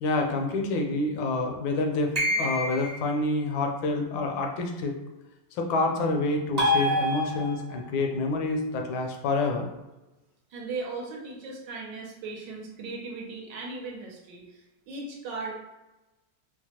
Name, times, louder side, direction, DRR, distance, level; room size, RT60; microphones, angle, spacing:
voice 1, 0.0-4.9 5.5-9.7, left 2 dB, 80° left, 3 dB, 1.4 m, -27 dB
sound 1, 2.1-3.1 6.6-7.8, left 1 dB, 35° right, 0.7 m, -26 dB
voice 2, 10.5-15.5, right 3 dB, 75° right, -1 dB, 1.2 m, -37 dB
4.5 x 2.1 x 2.8 m, 1.0 s
omnidirectional pair, 2.1 m